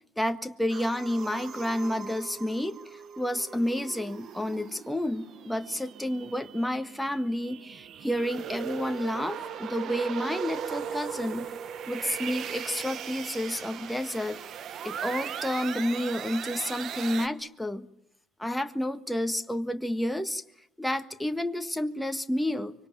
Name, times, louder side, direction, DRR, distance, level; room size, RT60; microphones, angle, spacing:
voice 1, 0.2-11.5 11.9-14.4 14.8-17.9 18.4-20.4 20.8-22.7, left 1 dB, 5° left, 8 dB, 1.6 m, -30 dB
sound 1, 0.7-17.3, right 8 dB, 55° right, 1.2 m, -39 dB
25.0 x 24.0 x 9.0 m, 0.74 s
hypercardioid pair, 65°, 0 cm